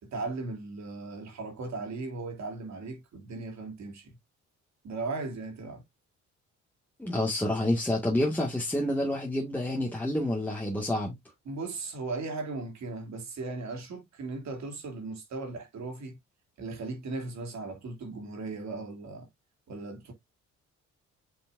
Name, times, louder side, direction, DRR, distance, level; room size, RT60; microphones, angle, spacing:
voice 1, 0.0-4.2 4.8-5.8 11.4-16.2 16.6-19.3 19.7-20.1, right 3 dB, 65° right, 3.0 m, -37 dB
voice 2, 7.0-11.1, left 1 dB, 5° left, 2.0 m, -28 dB
7.7 x 5.3 x 2.6 m
cardioid pair, 90°, 30 cm